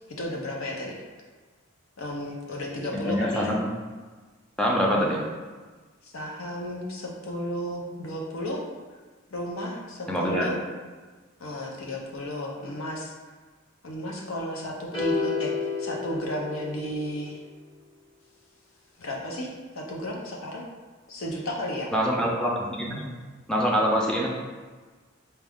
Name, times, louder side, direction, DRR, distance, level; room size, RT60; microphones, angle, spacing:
voice 1, 0.2-0.9 2.0-3.6 5.0-5.2 6.0-8.6 9.3-10.5 11.4-13.1 13.8-17.4 19.0-20.6 21.1-21.9, equal, 85° left, -1 dB, 0.8 m, -33 dB
voice 2, 3.1-3.7 4.6-5.2 10.1-10.5 21.9-23.1 23.5-24.3, equal, 5° left, -3 dB, 0.6 m, -25 dB
sound 1, 14.9-17.2, left 5 dB, 25° left, 1.4 m, -30 dB
4.2 x 2.4 x 3.6 m, 1.4 s
head